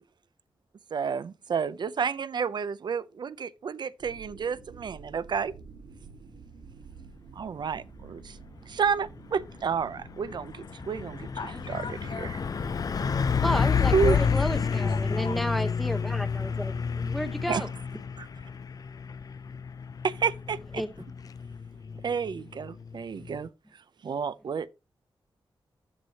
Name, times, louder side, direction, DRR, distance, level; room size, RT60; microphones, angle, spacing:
voice 1, 0.9-5.5 7.4-8.4 8.7-11.3 11.7-11.8 12.2-12.4 13.9-14.2 17.5-17.6 20.0-20.8 22.0-23.5 24.0-24.7, right 6 dB, 55° right, 0.5 m, -30 dB
sound 1, 4.0-21.4 21.7-21.8, right 5 dB, 85° right, 1.5 m, -51 dB
Truck, 9.2-23.5, left 6 dB, 45° left, 0.4 m, -30 dB
voice 2, 11.4-12.3 12.9-15.4, left 4 dB, 75° left, 5.5 m, -42 dB
voice 3, 13.4-17.7 20.8-20.9, equal, ahead, 0.7 m, -32 dB
13.5 x 4.7 x 2.8 m
wide cardioid pair, 175°, 9 cm